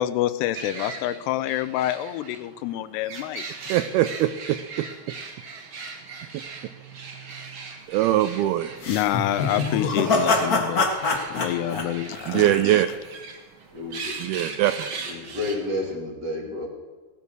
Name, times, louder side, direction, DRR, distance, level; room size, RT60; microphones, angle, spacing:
voice 1, 0.0-3.5 8.9-10.9 11.3-12.8, left 13 dB, 80° left, 14 dB, 2.6 m, -27 dB
sound 1, 0.5-15.9, right 4 dB, 55° right, 1.4 m, -39 dB
voice 2, 3.7-4.9 6.3-6.4 7.9-8.8 12.3-12.9 14.2-15.0, right 13 dB, 85° right, 11 dB, 2.2 m, -22 dB
sound 2, 8.8-12.9, left 3 dB, 65° left, 0.9 m, -24 dB
voice 3, 13.7-14.2 15.1-16.7, left 2 dB, 30° right, 0 dB, 2.3 m, -30 dB
17.5 x 10.5 x 6.2 m, 1.4 s
omnidirectional pair, 4.9 m